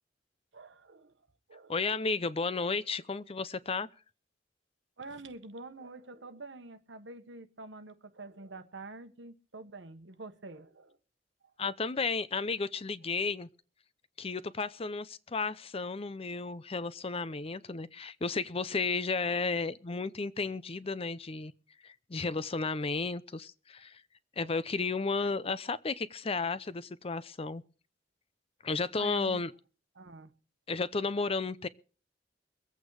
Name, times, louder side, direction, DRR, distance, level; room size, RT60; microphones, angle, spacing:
voice 1, 0.5-1.1 1.5-1.7 5.0-11.0 24.4-24.6 29.0-29.5 29.9-30.3, right 2 dB, 85° right, 1.3 m, -47 dB
voice 2, 1.7-3.9 11.6-13.5 14.2-21.5 21.8-24.0 24.4-27.6 28.6-29.5 30.7-31.7, left 4 dB, 35° left, 0.6 m, -33 dB
22.5 x 8.3 x 4.8 m
head